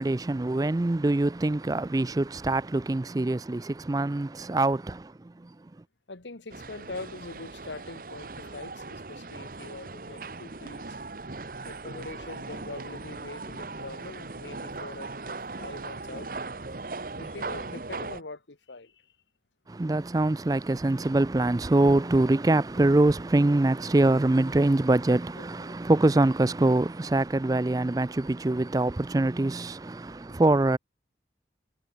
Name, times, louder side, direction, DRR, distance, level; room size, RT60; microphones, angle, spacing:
voice 1, 0.0-5.1 19.7-30.8, right 2 dB, 20° right, 0.4 m, -24 dB
voice 2, 6.1-11.0 11.6-16.3 17.1-19.1 25.3-25.8, left 3 dB, 90° left, 1.6 m, -43 dB
sound 1, 6.5-18.2, right 3 dB, 50° right, 1.1 m, -39 dB
head